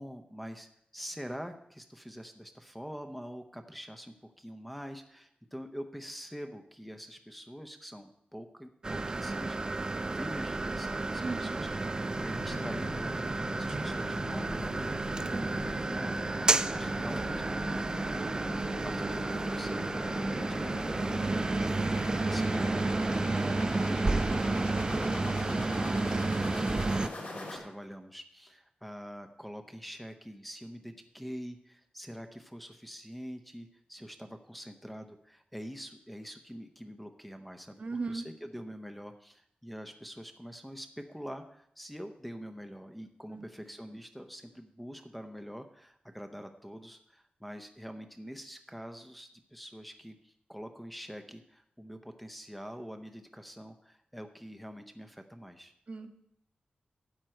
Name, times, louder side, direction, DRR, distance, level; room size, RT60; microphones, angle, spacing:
voice 1, 0.0-15.0 15.3-17.8 18.8-37.8 38.1-55.7, equal, 5° left, 6 dB, 0.7 m, -45 dB
sound 1, 8.8-27.1, right 2 dB, 25° right, 0.4 m, -31 dB
sound 2, 11.1-27.6, left 2 dB, 60° left, 2.7 m, -41 dB
voice 2, 11.2-11.6 15.3-15.7 37.8-38.2 43.3-43.4 55.9-56.1, right 3 dB, 45° right, 7 dB, 1.0 m, -37 dB
12.5 x 9.1 x 4.4 m, 0.74 s
wide cardioid pair, 140°, 3 cm